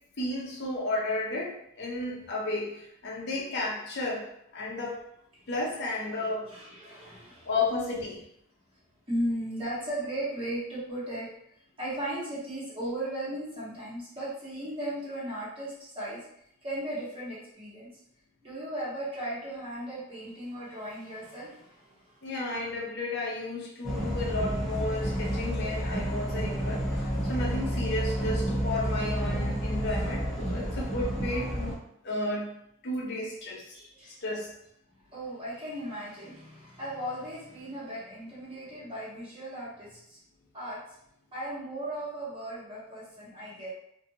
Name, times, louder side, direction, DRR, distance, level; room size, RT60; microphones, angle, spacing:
voice 1, 0.2-5.0 5.5-6.5 7.4-8.2 22.2-32.5 32.8-33.8 34.2-34.5, left 2 dB, 55° left, -2 dB, 0.6 m, -33 dB
voice 2, 5.4-5.8 6.1-7.5 9.1-11.3 11.8-16.2 16.6-17.9 18.4-22.4 33.7-34.2 35.1-40.2 40.5-41.0 41.3-43.7, right 1 dB, 25° right, -10 dB, 1.4 m, -37 dB
sound 1, 23.8-31.7, equal, ahead, 0.8 m, -30 dB
2.7 x 2.6 x 2.7 m, 0.75 s
head